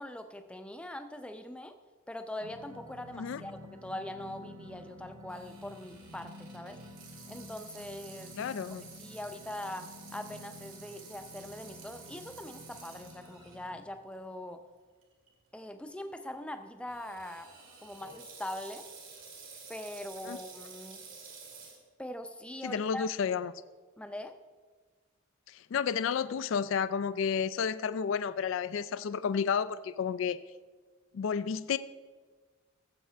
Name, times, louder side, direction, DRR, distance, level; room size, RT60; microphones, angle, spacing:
voice 1, 0.0-1.7 2.1-6.8 7.3-8.3 9.0-9.9 10.1-14.6 15.5-17.5 17.8-18.9 19.7-21.0 22.0-23.1 24.0-24.3, left 1 dB, 5° left, 7 dB, 0.5 m, -42 dB
sound 1, 2.4-13.8, left 1 dB, 90° right, 1.3 m, -51 dB
Water tap faucet / Sink (filling or washing), 5.3-13.7 14.2-14.3 15.0-15.3 16.9-21.8, right 5 dB, 70° right, 2.6 m, -51 dB
voice 2, 8.4-8.8 20.3-20.4 22.6-23.5 25.5-30.4 31.1-31.8, left 6 dB, 65° left, 14 dB, 0.3 m, -31 dB
16.5 x 7.7 x 3.4 m, 1.4 s
head